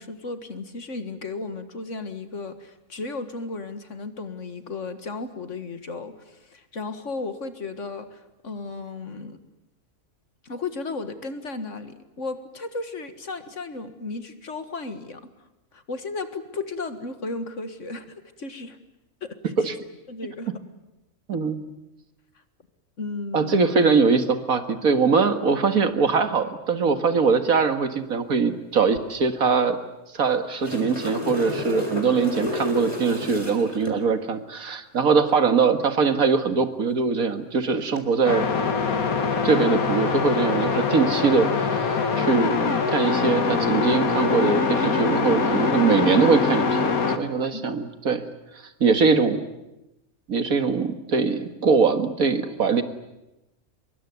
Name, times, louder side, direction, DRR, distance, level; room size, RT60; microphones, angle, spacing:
voice 1, 0.0-9.4 10.4-15.2 15.7-18.8 19.2-19.7 20.1-20.5 23.0-23.6 47.5-47.7, left 3 dB, 60° left, 9 dB, 2.1 m, -34 dB
voice 2, 21.3-21.6 23.3-29.8 30.1-38.4 39.4-42.6 42.9-46.9 47.2-48.3 48.8-49.4 50.3-52.8, right 5 dB, 80° right, 8 dB, 2.2 m, -22 dB
sound 1, 30.3-34.0 37.8-38.0, left 1 dB, 20° left, 4.3 m, -31 dB
sound 2, 38.2-47.2, left 4 dB, 80° left, 2.2 m, -23 dB
24.5 x 22.5 x 9.5 m, 0.94 s
omnidirectional pair, 1.5 m